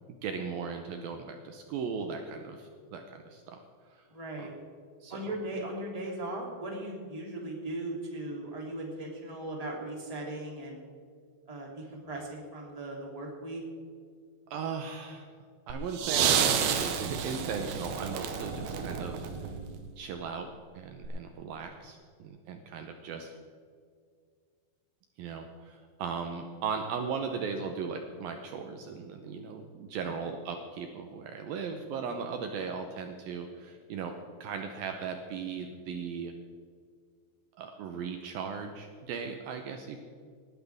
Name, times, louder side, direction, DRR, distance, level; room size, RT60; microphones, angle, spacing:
voice 1, 0.2-3.6 3.9-4.0 5.0-5.3 14.5-15.3 15.7-19.6 20.0-20.5 20.7-23.3 25.2-34.1 34.4-36.3 37.6-40.0, right 5 dB, 90° right, 5 dB, 2.0 m, -37 dB
voice 2, 4.1-4.5 5.1-10.8 11.5-13.6 30.0-30.1, right 1 dB, 10° right, -2 dB, 2.0 m, -38 dB
sound 1, 15.7-19.9 21.0-21.1, right 7 dB, 70° right, 2.5 m, -30 dB
19.5 x 12.5 x 3.6 m, 2.1 s
omnidirectional pair, 5.4 m